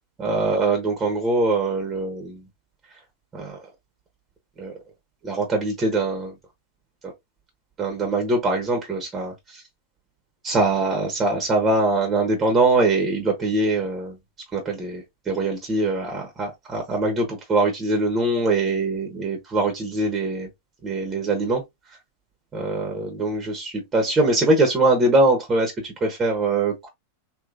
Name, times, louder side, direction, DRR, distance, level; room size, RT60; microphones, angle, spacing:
voice 1, 0.2-2.4 3.3-3.6 4.6-4.7 5.2-6.3 7.0-7.1 7.8-9.6 10.4-14.2 14.5-20.5 20.8-21.6 22.5-26.9, right 2 dB, 25° right, 1.3 m, -23 dB
3.2 x 3.1 x 2.5 m
hypercardioid pair, 100°, 0 cm